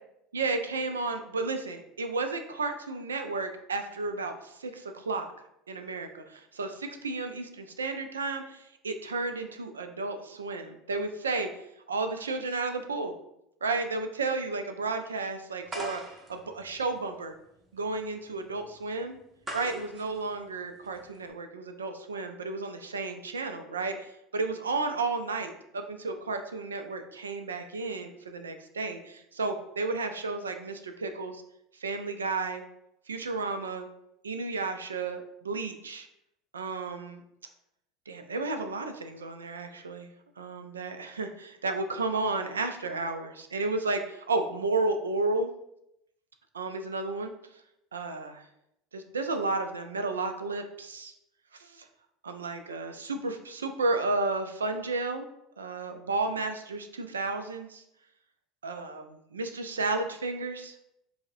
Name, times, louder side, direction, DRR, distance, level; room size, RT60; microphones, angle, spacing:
voice 1, 0.3-5.3 5.7-11.5 11.9-13.1 13.6-16.0 16.3-17.3 17.7-19.2 19.5-31.4 31.8-32.6 33.1-33.9 34.2-36.1 36.5-37.2 38.1-45.5 46.5-47.3 47.9-48.4 48.9-51.1 51.6-51.9 52.2-55.3 55.6-57.8 58.6-60.8, right 3 dB, 85° right, 7 dB, 0.3 m, -32 dB
sound 1, 15.7-21.3, right 1 dB, 25° right, 0.8 m, -43 dB
4.6 x 2.1 x 2.6 m, 0.80 s
hypercardioid pair, 75°, 0 cm